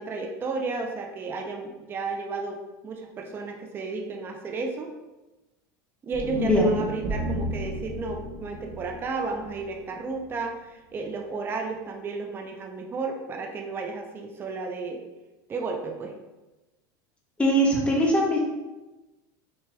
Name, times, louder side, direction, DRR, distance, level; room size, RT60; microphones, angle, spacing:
voice 1, 0.0-4.9 6.0-15.0 15.5-16.1, right 4 dB, 20° right, 3 dB, 0.5 m, -33 dB
sound 1, 6.1-10.4, right 1 dB, 45° right, 0.9 m, -34 dB
voice 2, 6.3-6.7 17.4-18.4, equal, 10° left, -2 dB, 1.1 m, -21 dB
5.9 x 3.2 x 2.2 m, 1.1 s
supercardioid pair, 130°, 11 cm